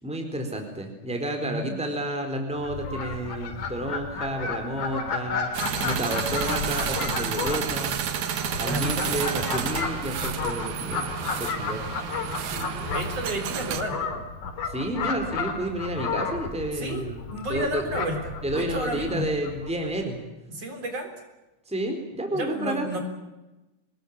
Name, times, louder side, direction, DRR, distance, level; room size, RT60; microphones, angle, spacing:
voice 1, 0.0-5.5 5.8-8.0 8.6-11.1 11.4-11.9 14.7-17.2 17.5-17.8 18.4-20.2 21.7-22.9, right 1 dB, ahead, 4 dB, 4.0 m, -30 dB
voice 2, 1.4-1.8 8.4-9.3 12.4-14.1 16.7-19.3 20.5-21.1 22.3-23.0, right 1 dB, 50° right, 5 dB, 4.9 m, -32 dB
Fowl, 2.6-19.9, left 4 dB, 75° left, 4.7 m, -32 dB
sound 1, 5.5-13.8, right 8 dB, 70° right, 3.0 m, -31 dB
25.5 x 21.0 x 8.9 m, 1.0 s
omnidirectional pair, 3.6 m